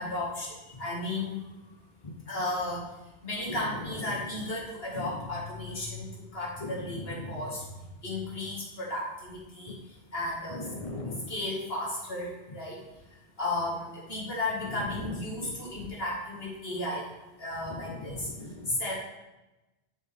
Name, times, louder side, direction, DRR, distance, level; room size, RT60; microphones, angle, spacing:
voice 1, 0.0-1.4 2.3-2.8 3.2-6.1 6.3-7.6 8.0-9.7 10.1-10.6 11.3-12.8 13.4-17.1 17.4-18.3 18.8-18.9, left 2 dB, 60° left, -4 dB, 2.2 m, -34 dB
voice 2, 3.5-4.4 4.9-5.3 6.6-7.5 9.7-9.8 10.5-11.4 14.6-15.6 17.7-18.8, left 2 dB, 35° left, 3 dB, 0.7 m, -40 dB
8.2 x 6.5 x 3.5 m, 1.0 s
omnidirectional pair, 1.1 m